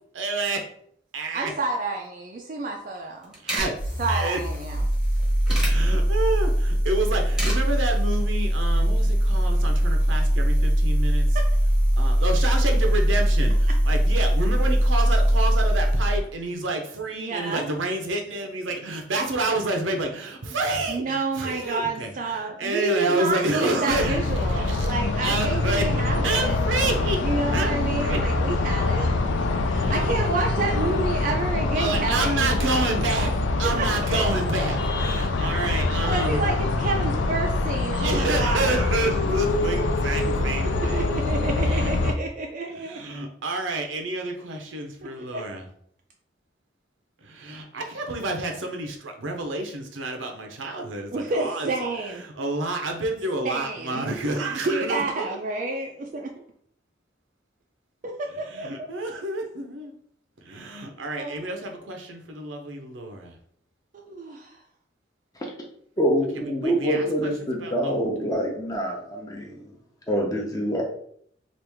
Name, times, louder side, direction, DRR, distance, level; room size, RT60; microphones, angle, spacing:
voice 1, 0.1-0.7 1.1-1.5 3.4-3.8 4.1-4.4 5.5-11.2 12.0-24.2 24.5-24.9 25.2-25.9 26.2-27.2 27.5-28.2 29.8-30.1 31.8-36.5 37.9-41.0 41.7-41.9 42.7-45.7 47.2-51.7 52.2-55.4 58.4-59.9 60.4-63.4 66.6-67.3 67.6-67.9, right 2 dB, 90° right, 4 dB, 0.6 m, -29 dB
voice 2, 1.3-3.3 4.0-4.8 17.1-17.7 20.9-26.6 27.2-29.2 29.6-32.5 33.6-34.2 35.2-35.3 35.6-38.8 40.0-40.1 40.9-43.0 45.3-45.4 51.1-52.2 53.4-54.0 54.4-55.9 58.0-58.3 58.6-58.9 61.2-61.4 63.9-64.6, right 3 dB, 45° right, 2 dB, 0.3 m, -29 dB
sound 1, 3.0-3.1 3.2-3.7 4.9-5.7 7.1-7.6 8.0-8.2, right 1 dB, 5° right, 0.9 m, -31 dB
sound 2, 3.6-16.3, equal, 50° left, 0.9 m, -21 dB
sound 3, 23.9-42.1, left 2 dB, 75° left, 0.4 m, -24 dB
voice 3, 66.0-69.7 70.1-70.8, equal, 20° left, -1 dB, 0.6 m, -25 dB
3.0 x 2.4 x 3.4 m, 0.65 s
head